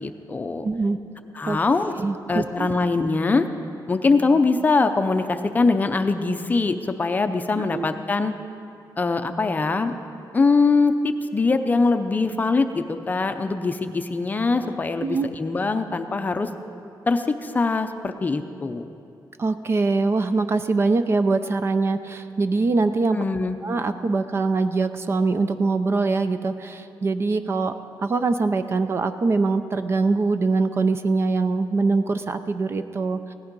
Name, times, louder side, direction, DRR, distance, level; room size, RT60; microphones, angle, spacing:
voice 1, 0.0-0.6 1.4-1.9 2.3-3.5 3.9-8.3 9.0-9.9 10.3-16.5 17.1-18.9 23.1-23.6, left 3 dB, 20° left, 7 dB, 0.5 m, -22 dB
voice 2, 0.6-1.0 1.5-1.6 2.0-2.7 7.5-7.9 15.0-15.3 19.4-23.2 23.6-27.7 28.0-33.3, right 3 dB, 35° right, 10 dB, 0.4 m, -23 dB
17.0 x 11.5 x 5.3 m, 2.6 s
wide cardioid pair, 180°, 8 cm